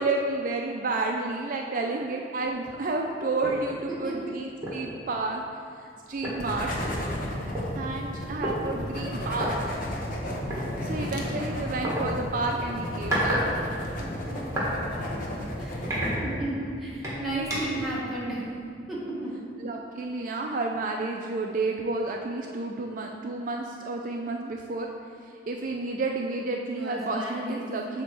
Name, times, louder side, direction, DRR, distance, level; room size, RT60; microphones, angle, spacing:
voice 1, 0.0-5.4 5.8-6.7 7.7-9.7 10.8-13.4 19.6-24.9 25.5-28.0, right 3 dB, 50° right, 1 dB, 0.4 m, -30 dB
sound 1, 3.4-3.6 4.1-4.2 4.6-4.9 5.9-6.0 6.2-7.6 8.4-8.6 9.3-9.5 10.5-10.7 11.8-12.0 12.8-13.5 13.8-14.7 15.2-15.3 15.8-16.6 17.0-17.8, equal, 15° right, 1.6 m, -31 dB
voice 2, 3.9-4.4 7.9-8.6 14.0-19.4 26.7-27.7 27.9-28.0, right 1 dB, ahead, -9 dB, 1.7 m, -35 dB
sound 2, 6.4-16.2, left 1 dB, 50° left, 0.9 m, -33 dB
7.9 x 2.9 x 6.2 m, 2.3 s
head